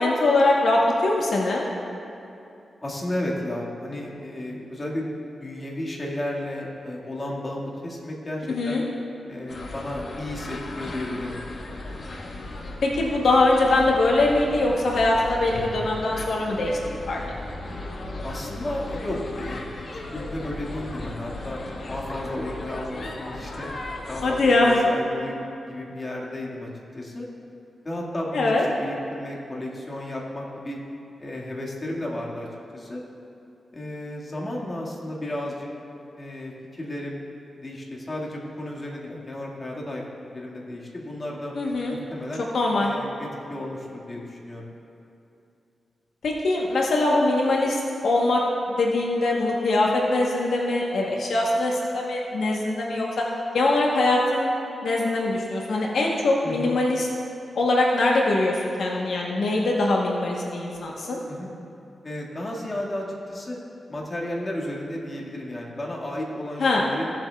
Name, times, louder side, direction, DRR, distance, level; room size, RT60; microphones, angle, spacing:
voice 1, 0.0-1.6 8.5-8.8 12.8-16.8 17.1-17.2 24.2-24.8 28.3-28.6 41.5-42.0 42.5-42.9 46.2-48.4 48.7-53.2 53.5-54.5 54.8-57.1 57.5-61.2 66.6-66.8, left 2 dB, 80° left, -2 dB, 1.0 m, -22 dB
voice 2, 2.8-5.1 5.4-8.8 9.3-11.4 18.2-19.7 19.9-21.6 21.9-23.7 24.1-27.3 27.8-30.8 31.2-33.0 33.7-35.7 36.2-37.2 37.6-41.5 41.9-42.4 42.8-44.7 56.4-56.7 61.3-61.5 62.0-63.6 63.9-67.1, left 1 dB, 30° left, -4 dB, 1.7 m, -33 dB
sound 1, 9.5-24.5, left 2 dB, 55° left, 1.0 m, -36 dB
16.5 x 7.7 x 2.3 m, 2.7 s
cardioid pair, 80°, 0 cm